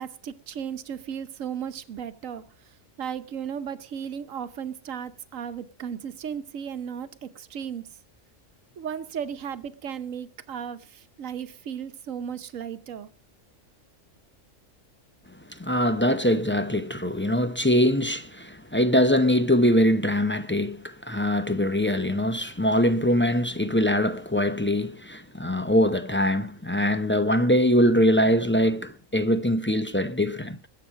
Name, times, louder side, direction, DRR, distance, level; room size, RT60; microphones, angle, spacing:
voice 1, 0.0-2.5 3.0-7.9 8.8-13.1, right 8 dB, 85° right, 1.3 m, -35 dB
voice 2, 15.5-30.6, equal, 10° left, 0.6 m, -23 dB
20.5 x 7.9 x 5.0 m
omnidirectional pair, 1.3 m